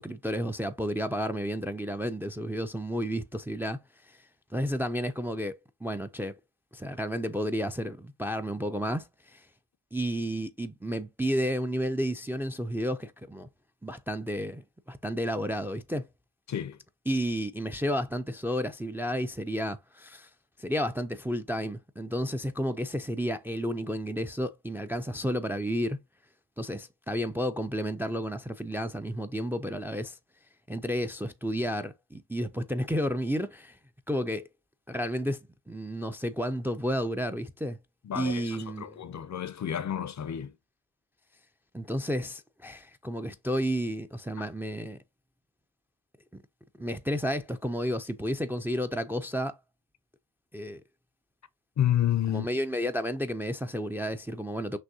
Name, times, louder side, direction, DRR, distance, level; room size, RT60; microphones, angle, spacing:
voice 1, 0.0-3.8 4.1-4.2 4.5-5.6 5.8-6.3 6.7-9.5 9.9-13.5 13.8-16.1 17.1-20.3 20.6-26.0 26.6-30.2 30.7-33.8 34.1-34.5 34.9-37.8 38.1-39.0 41.7-45.0 46.8-49.6 50.5-50.8 52.3-54.8, equal, 5° right, 0.4 m, -31 dB
voice 2, 16.5-16.8 38.0-40.5 51.8-52.5, left 10 dB, 50° left, 0.5 m, -30 dB
6.2 x 2.6 x 2.7 m
wide cardioid pair, 110°, 37 cm